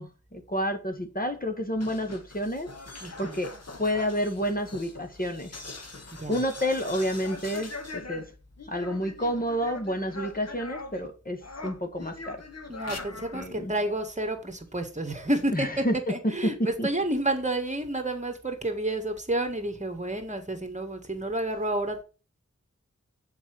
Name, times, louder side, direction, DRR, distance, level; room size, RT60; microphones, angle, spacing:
voice 1, 0.0-2.7 3.2-3.5 3.8-5.5 6.3-8.2 8.7-12.4 13.3-13.7 15.5-16.5 16.8-16.9, equal, 30° left, 1.5 m, -29 dB
sound 1, 1.7-11.1 11.4-13.5, left 3 dB, 60° left, 1.5 m, -42 dB
voice 2, 3.0-3.4 6.2-6.4 12.7-22.0, right 1 dB, 25° right, 1.9 m, -30 dB
7.1 x 4.8 x 6.1 m
wide cardioid pair, 60°, 29 cm